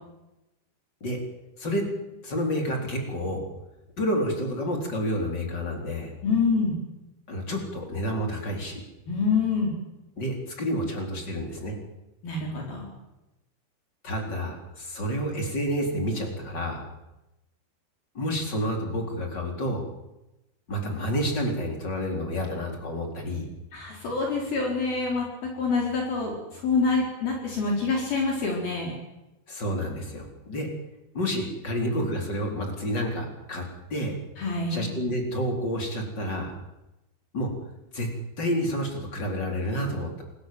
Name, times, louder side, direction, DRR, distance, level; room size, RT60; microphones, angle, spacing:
voice 1, 2.2-3.4 4.0-6.1 7.3-8.8 10.2-11.7 14.0-16.8 18.1-19.8 20.7-23.5 29.5-30.7 31.1-33.6 33.9-34.1 34.7-36.5 37.3-37.5 37.9-38.1 38.4-40.2, equal, 25° left, 2 dB, 4.4 m, -29 dB
voice 2, 6.2-6.8 9.1-9.7 12.2-12.9 23.7-25.3 25.6-28.9 34.4-34.9, left 4 dB, 55° left, -1 dB, 5.9 m, -26 dB
27.5 x 20.0 x 7.8 m, 0.96 s
omnidirectional pair, 5.1 m